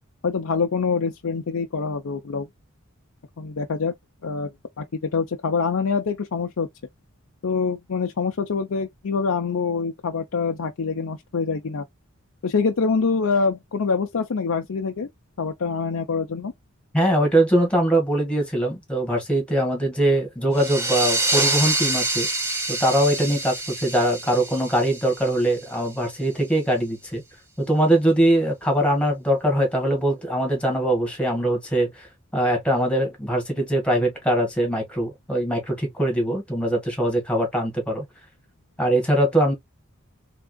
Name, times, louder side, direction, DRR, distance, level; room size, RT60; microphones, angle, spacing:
voice 1, 0.2-2.5 3.4-3.9 4.2-4.5 4.8-6.7 7.4-11.8 12.4-15.1 15.4-16.5, left 5 dB, 75° left, 0.6 m, -25 dB
voice 2, 16.9-22.3 22.7-27.2 27.6-32.1 32.3-38.0 38.8-39.5, right 1 dB, 5° left, 1.7 m, -22 dB
sound 1, 20.5-25.9, right 2 dB, 15° right, 1.1 m, -26 dB
3.6 x 3.5 x 2.2 m
head